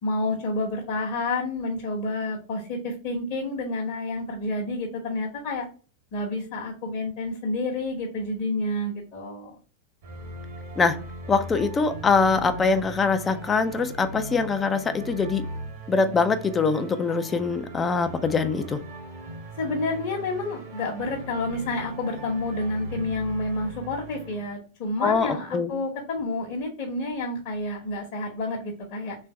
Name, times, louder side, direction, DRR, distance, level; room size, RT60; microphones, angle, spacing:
voice 1, 0.0-5.7 6.1-9.5 19.6-29.2, left 2 dB, 45° left, 1.0 m, -29 dB
sound 1, 10.0-24.5, right 1 dB, 55° right, 1.1 m, -39 dB
voice 2, 11.3-15.5 15.9-18.8 25.0-25.7, left 4 dB, 20° left, 0.4 m, -23 dB
3.3 x 3.3 x 4.3 m
figure-of-eight pair, 90°, 0 cm